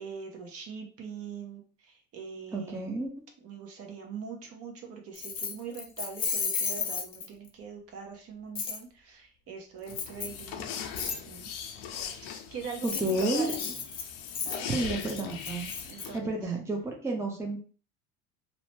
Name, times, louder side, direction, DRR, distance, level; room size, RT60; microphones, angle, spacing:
voice 1, 0.0-3.0 3.4-10.7 11.3-11.5 12.5-13.6 14.4-14.7 15.9-16.5, right 5 dB, 50° right, 2 dB, 0.8 m, -42 dB
voice 2, 2.5-3.1 12.8-13.5 14.7-15.7 16.1-17.6, right 2 dB, 10° right, 1 dB, 0.6 m, -31 dB
Keys jangling, 5.2-7.5 8.6-8.8 9.9-10.4 11.0-11.2 12.7-16.1, left 5 dB, 30° left, 0.7 m, -34 dB
sound 1, 9.9-16.2, left 7 dB, 75° left, 0.6 m, -39 dB
2.7 x 2.1 x 3.1 m, 0.40 s
supercardioid pair, 105°, 31 cm